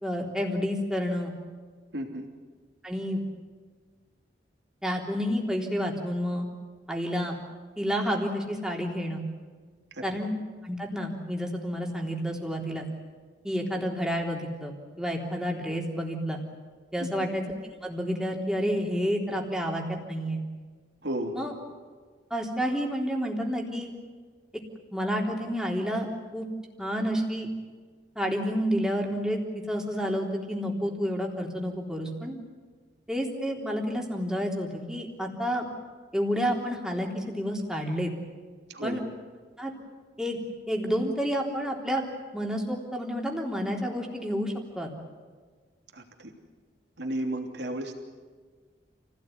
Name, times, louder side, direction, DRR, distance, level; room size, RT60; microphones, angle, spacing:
voice 1, 0.0-1.3 2.8-3.2 4.8-6.5 6.9-7.4 7.8-9.2 10.0-10.4 10.6-12.9 13.4-16.4 16.9-17.4 17.8-19.8 20.1-20.4 21.3-21.5 22.3-23.9 24.9-26.5 26.8-27.5 28.2-29.4 29.7-32.4 33.1-35.7 36.1-38.1 38.8-39.0 39.6-39.7 40.2-40.4 40.7-42.0 42.3-44.9, equal, 5° right, -1 dB, 3.6 m, -29 dB
voice 2, 1.9-2.3 9.9-10.2 17.0-17.1 21.0-21.3 38.7-39.0 45.9-46.3 47.0-48.0, right 1 dB, 75° right, 2 dB, 3.2 m, -33 dB
29.0 x 17.0 x 9.5 m, 1.5 s
head